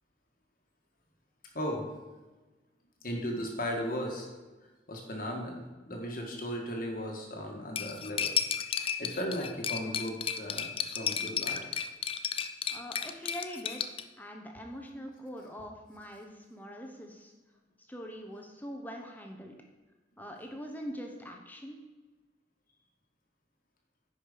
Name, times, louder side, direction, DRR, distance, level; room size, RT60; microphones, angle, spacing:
voice 1, 1.5-1.8 3.0-4.3 4.9-8.3 8.7-11.7, equal, 50° left, 1 dB, 1.6 m, -36 dB
Cutlery silverware, 7.8-14.0, left 7 dB, 30° left, 0.4 m, -33 dB
voice 2, 12.7-17.3 17.9-19.5 20.2-21.8, equal, 10° left, 2 dB, 1.0 m, -43 dB
10.0 x 5.2 x 5.1 m, 1.2 s
head